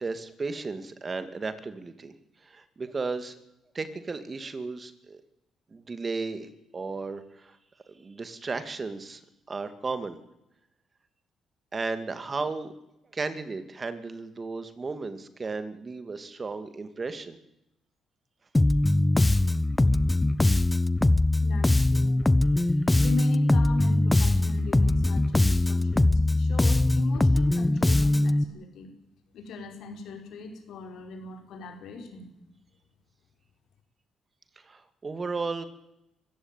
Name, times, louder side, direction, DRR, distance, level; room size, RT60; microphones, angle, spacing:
voice 1, 0.0-2.1 2.4-3.3 3.7-5.2 5.7-7.6 7.9-9.2 9.5-10.2 11.7-12.7 13.1-17.4 34.6-35.6, right 4 dB, 30° right, 11 dB, 2.4 m, -34 dB
Bass guitar, 18.5-28.4, left 2 dB, 15° left, 0.7 m, -22 dB
voice 2, 21.4-22.2 22.8-28.9 29.3-32.3, left 4 dB, 75° left, 5 dB, 5.0 m, -40 dB
24.5 x 15.5 x 9.2 m, 0.86 s
cardioid pair, 90°, 0 cm